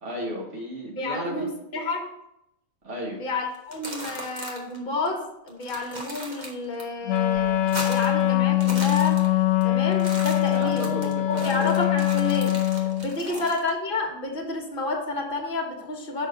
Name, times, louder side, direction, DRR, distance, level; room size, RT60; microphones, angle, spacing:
voice 1, 0.0-1.5 2.8-3.2 10.5-11.8 13.2-13.5, equal, 70° right, -2 dB, 1.7 m, -34 dB
voice 2, 1.0-2.1 3.2-9.2 9.6-10.9 11.4-12.5 13.0-16.3, left 3 dB, 45° left, 1 dB, 1.4 m, -30 dB
sound 1, 3.5-4.8 5.1-5.2 5.5-6.8 7.2-8.2 8.5-9.6 9.9-13.7, right 1 dB, 35° right, 1.3 m, -38 dB
Wind instrument woodwind instrument, 7.1-13.2, left 13 dB, 90° left, 1.0 m, -23 dB
6.0 x 4.4 x 6.3 m, 0.82 s
omnidirectional pair, 1.3 m